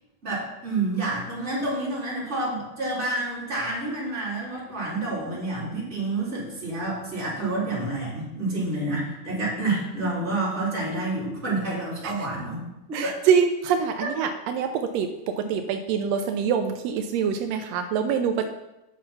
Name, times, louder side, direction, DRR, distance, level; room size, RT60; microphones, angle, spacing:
voice 1, 0.2-12.6 12.9-13.1 14.0-14.1 15.4-15.5, right 2 dB, 20° right, -7 dB, 3.7 m, -29 dB
voice 2, 12.9-15.1 15.5-18.4, right 7 dB, 85° right, 7 dB, 1.5 m, -24 dB
9.4 x 6.3 x 5.6 m, 0.96 s
omnidirectional pair, 3.6 m